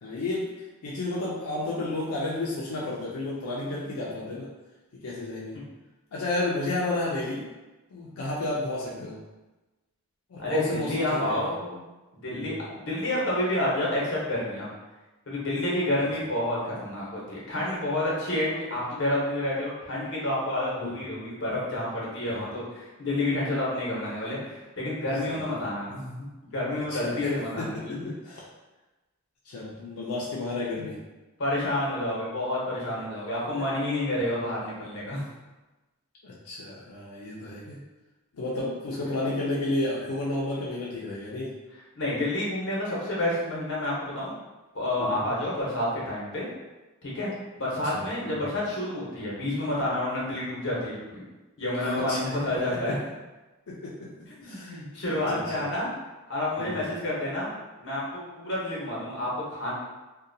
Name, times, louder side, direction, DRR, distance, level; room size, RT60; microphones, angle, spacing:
voice 1, 0.0-4.5 4.9-5.7 6.1-7.5 7.9-9.2 10.3-11.5 12.3-12.6 20.8-21.0 22.3-22.4 25.3-25.4 26.9-28.4 29.4-31.0 36.2-37.8 38.3-41.5 45.0-45.2 47.8-48.5 51.8-52.4 52.7-53.0 53.7-54.8 55.1-55.6 56.6-56.8, left 2 dB, 85° left, -5 dB, 0.4 m, -32 dB
voice 2, 10.4-11.8 12.2-14.7 15.3-26.1 26.4-27.9 31.4-35.3 41.9-44.3 44.7-46.5 47.0-47.3 47.6-51.2 51.6-53.0 54.4-55.9 56.3-57.5 57.8-59.7, left 1 dB, 55° left, -6 dB, 0.9 m, -29 dB
2.7 x 2.2 x 2.6 m, 1.1 s
head